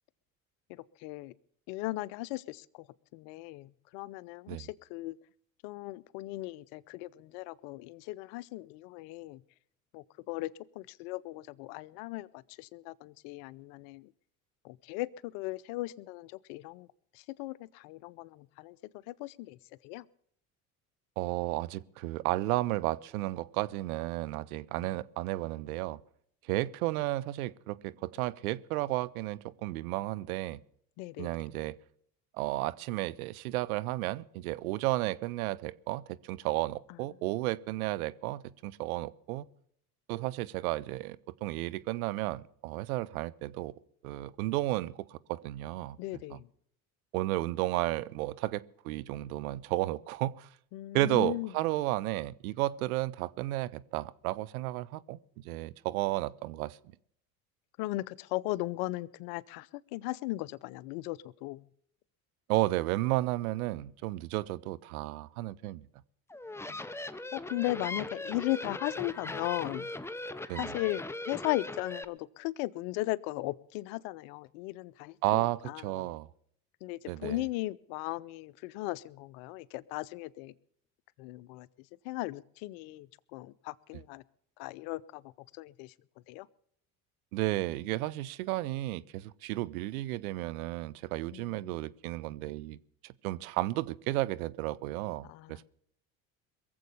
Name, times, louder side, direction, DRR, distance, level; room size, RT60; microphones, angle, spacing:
voice 1, 0.7-1.3 1.7-2.9 3.1-5.2 5.6-9.4 9.9-14.1 14.6-16.9 17.1-18.8 19.1-19.6 19.8-20.0 24.8-24.9 31.0-31.3 46.0-46.5 50.7-51.5 57.8-61.7 66.7-66.8 67.3-69.9 70.6-76.0 76.8-80.5 81.2-81.7 82.0-84.2 84.6-85.2 85.5-85.9 86.3-86.5 91.3-91.9 95.2-95.6, left 19 dB, 70° left, 0.7 m, -37 dB
voice 2, 21.2-26.0 26.5-30.6 31.2-31.8 32.4-39.5 40.1-43.7 44.0-46.0 46.3-46.4 47.1-50.5 50.9-55.2 55.4-56.8 62.5-65.9 70.5-70.8 75.2-76.3 77.1-77.4 87.3-92.8 93.0-95.6, right 17 dB, 80° right, 0.7 m, -33 dB
sound 1, 66.3-72.0, left 2 dB, 5° left, 0.8 m, -39 dB
21.5 x 7.8 x 6.9 m
hypercardioid pair, 75°, 42 cm